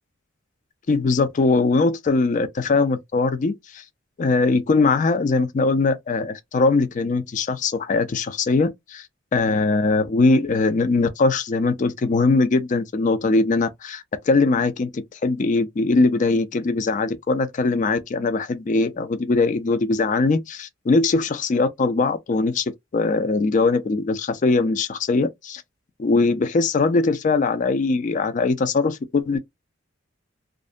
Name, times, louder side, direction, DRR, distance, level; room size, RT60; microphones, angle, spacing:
voice 1, 0.9-3.8 4.2-9.1 9.3-25.6 26.0-29.4, left 3 dB, 40° left, 0.4 m, -21 dB
2.5 x 2.1 x 2.4 m
head